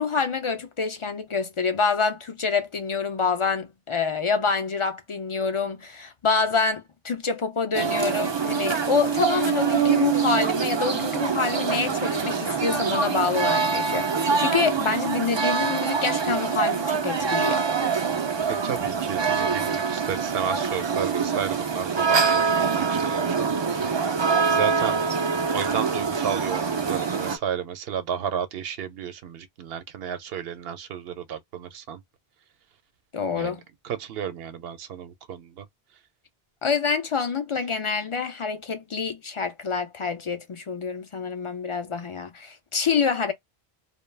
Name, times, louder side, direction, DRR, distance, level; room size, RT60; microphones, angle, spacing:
voice 1, 0.0-17.7 33.1-33.6 36.6-43.3, left 5 dB, 50° left, 0.4 m, -27 dB
sound 1, 7.7-27.4, right 5 dB, 45° right, 0.3 m, -24 dB
voice 2, 18.5-25.0 25.5-32.0 33.4-33.5 33.8-35.7, right 8 dB, 75° right, 0.8 m, -32 dB
2.3 x 2.2 x 3.1 m
omnidirectional pair, 1.0 m